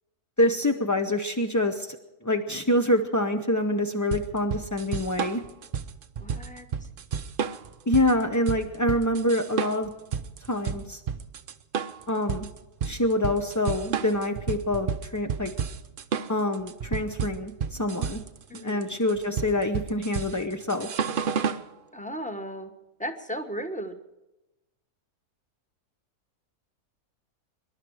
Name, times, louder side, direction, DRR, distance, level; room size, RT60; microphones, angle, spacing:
voice 1, 0.4-2.0 2.2-5.4 7.9-9.9 10.5-11.0 12.1-12.5 12.8-15.5 16.3-18.2 18.6-20.9, left 1 dB, 25° left, 5 dB, 0.4 m, -26 dB
sound 1, 4.1-21.7, right 7 dB, 50° right, 0.7 m, -31 dB
voice 2, 6.2-6.7 18.5-18.8 21.9-22.7 23.0-24.0, equal, 5° left, 7 dB, 1.0 m, -35 dB
25.0 x 11.5 x 4.7 m, 1.0 s
omnidirectional pair, 1.6 m